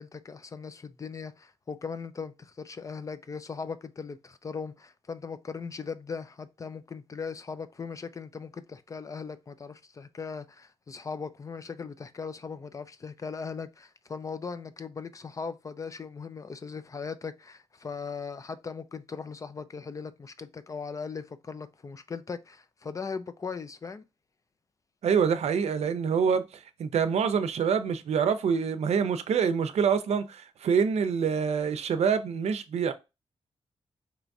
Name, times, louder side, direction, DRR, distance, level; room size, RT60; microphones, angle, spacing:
voice 1, 0.0-24.0, left 5 dB, 30° left, 0.3 m, -39 dB
voice 2, 25.0-32.9, right 6 dB, 75° right, 0.5 m, -26 dB
4.6 x 3.0 x 2.6 m
wide cardioid pair, 140°, 11 cm